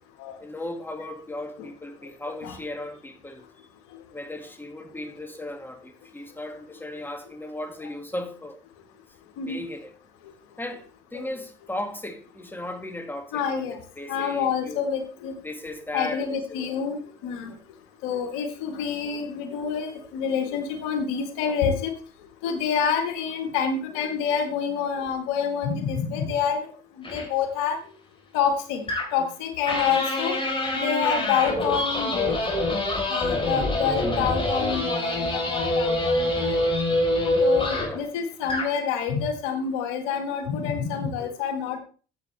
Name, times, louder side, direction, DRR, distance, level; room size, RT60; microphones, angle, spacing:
voice 1, 0.4-3.4 4.1-8.6 9.5-9.9 10.6-10.8 11.1-14.9 15.4-16.8 21.5-21.6 29.9-30.0 33.4-33.6 37.8-38.1, left 1 dB, 10° left, 2.1 m, -36 dB
voice 2, 13.3-13.8 14.1-15.3 15.9-17.5 18.0-21.9 22.4-26.7 27.0-27.8 28.3-28.8 29.1-30.4 30.7-32.3 33.1-36.7 37.4-41.8, left 7 dB, 85° left, 1.6 m, -27 dB
sound 1, 27.0-27.3 28.9-29.3 29.7-38.0 38.4-38.8, left 1 dB, 25° left, 4.3 m, -25 dB
12.5 x 8.1 x 3.3 m
supercardioid pair, 70°, 20 cm